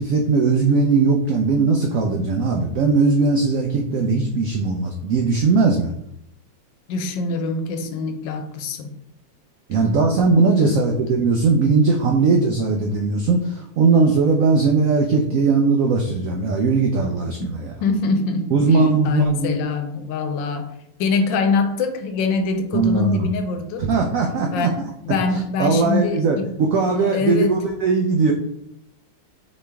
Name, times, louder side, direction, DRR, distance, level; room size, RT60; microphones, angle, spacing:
voice 1, 0.0-5.9 9.7-17.7 18.5-19.5 22.7-23.3 23.8-24.7 25.6-28.3, right 4 dB, 85° right, 2 dB, 0.7 m, -19 dB
voice 2, 6.9-9.0 10.5-11.0 17.8-20.7 21.0-23.9 24.5-24.8 25.0-26.5 27.0-27.6, left 4 dB, 90° left, 7 dB, 1.3 m, -24 dB
4.2 x 3.1 x 3.4 m, 0.75 s
omnidirectional pair, 2.0 m